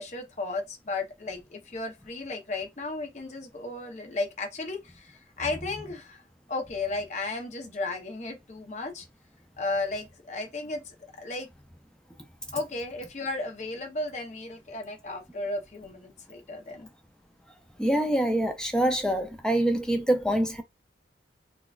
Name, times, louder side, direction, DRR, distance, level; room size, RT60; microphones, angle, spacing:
voice 1, 0.0-6.2 6.5-9.1 9.6-11.5 12.5-16.9, left 2 dB, 40° left, 0.7 m, -34 dB
voice 2, 17.8-20.6, right 1 dB, 5° left, 0.4 m, -25 dB
3.9 x 2.2 x 2.3 m
head